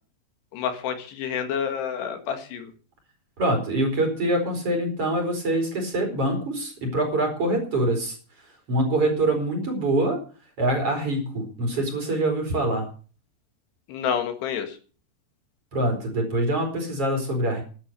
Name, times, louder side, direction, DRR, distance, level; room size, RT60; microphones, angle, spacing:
voice 1, 0.5-2.7 13.9-14.8, left 8 dB, 75° left, 7 dB, 3.7 m, -29 dB
voice 2, 3.4-8.2 8.7-10.2 10.6-12.9 15.7-17.6, right 1 dB, 35° right, 2 dB, 5.3 m, -24 dB
12.0 x 11.5 x 6.7 m, 0.39 s
omnidirectional pair, 4.9 m